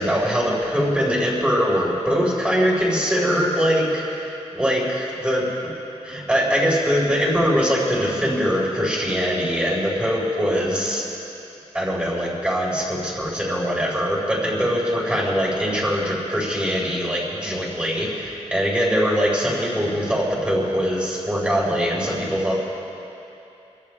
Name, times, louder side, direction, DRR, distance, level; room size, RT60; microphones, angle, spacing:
voice 1, 0.0-5.7 6.0-11.0 11.7-22.6, equal, 10° right, -4 dB, 4.3 m, -22 dB
26.5 x 14.0 x 3.3 m, 2.8 s
wide cardioid pair, 125°, 12 cm